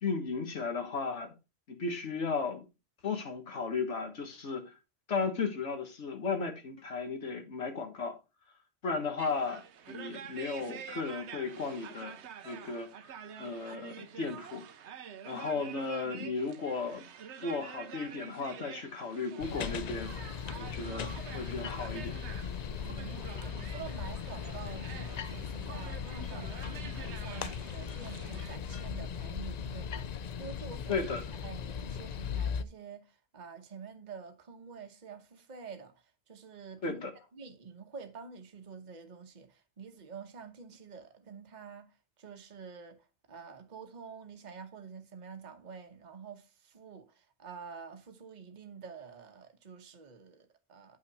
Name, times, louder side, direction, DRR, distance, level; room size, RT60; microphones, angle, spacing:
voice 1, 0.0-1.3 1.7-2.6 3.0-4.6 5.1-8.2 8.8-9.6 9.9-12.2 12.4-12.9 13.4-14.6 15.2-17.1 17.4-20.2 20.6-22.2 30.9-31.2 36.8-37.1, left 4 dB, 70° left, 1.6 m, -35 dB
sound 1, 9.2-28.6, right 8 dB, 70° right, 1.0 m, -48 dB
sound 2, 19.4-32.6, left 7 dB, 55° left, 0.4 m, -38 dB
voice 2, 22.7-31.0 31.4-37.0 37.3-51.0, right 6 dB, 40° right, 1.2 m, -48 dB
8.9 x 5.8 x 4.1 m
omnidirectional pair, 1.2 m